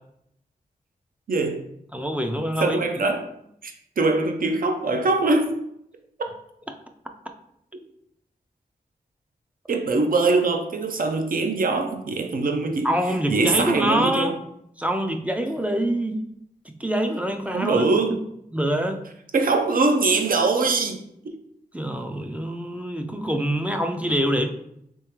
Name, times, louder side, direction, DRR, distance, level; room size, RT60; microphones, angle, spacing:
voice 1, 1.3-1.6 2.6-3.2 3.6-5.6 9.7-12.9 13.3-14.4 17.5-18.2 19.3-21.4, right 3 dB, 65° right, 4 dB, 0.5 m, -22 dB
voice 2, 1.9-2.8 12.8-14.3 14.8-16.2 16.7-17.8 18.5-19.0 21.7-24.5, equal, 10° right, 4 dB, 0.4 m, -25 dB
3.5 x 3.2 x 3.0 m, 0.75 s
wide cardioid pair, 85°, 16 cm